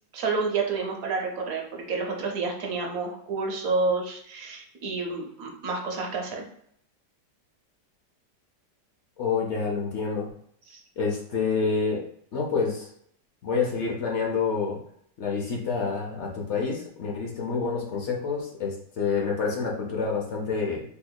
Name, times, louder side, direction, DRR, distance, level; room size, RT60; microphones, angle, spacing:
voice 1, 0.1-6.4 10.7-10.8, right 4 dB, 65° right, 1 dB, 1.0 m, -29 dB
voice 2, 9.2-10.3 11.0-12.0 12.3-12.9 13.4-14.8 15.2-20.8, left 5 dB, 60° left, -1 dB, 0.7 m, -28 dB
3.8 x 2.9 x 2.2 m, 0.68 s
omnidirectional pair, 1.8 m